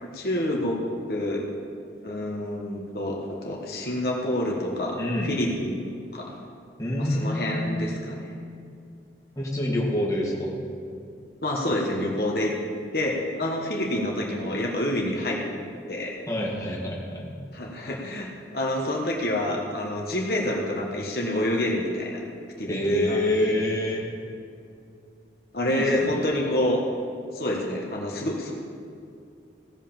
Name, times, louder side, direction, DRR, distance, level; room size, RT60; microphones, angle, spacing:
voice 1, 0.0-0.8 1.1-1.4 2.0-5.0 5.2-5.8 6.1-6.3 7.0-8.3 11.4-12.5 12.9-15.4 15.9-16.2 17.5-22.2 22.6-23.6 25.5-26.8 27.3-28.5, left 1 dB, 60° left, -2 dB, 1.4 m, -28 dB
voice 2, 5.0-5.4 6.8-7.9 9.3-10.6 16.3-17.3 22.7-24.0 25.7-26.3, left 1 dB, 20° left, -4 dB, 1.9 m, -27 dB
16.5 x 5.7 x 7.2 m, 2.4 s
head